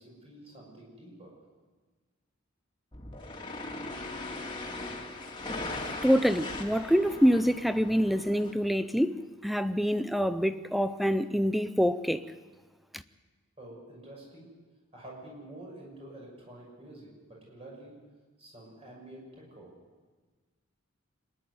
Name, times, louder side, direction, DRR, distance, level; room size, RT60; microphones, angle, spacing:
voice 1, 0.0-1.4 13.6-14.5 14.9-18.0 18.4-19.7, right 1 dB, 30° right, 6.2 m, -48 dB
sound 1, 2.9-8.5, left 2 dB, 25° left, 2.3 m, -39 dB
voice 2, 6.0-12.2 12.9-13.0, equal, ahead, 0.5 m, -26 dB
25.5 x 11.0 x 9.5 m
head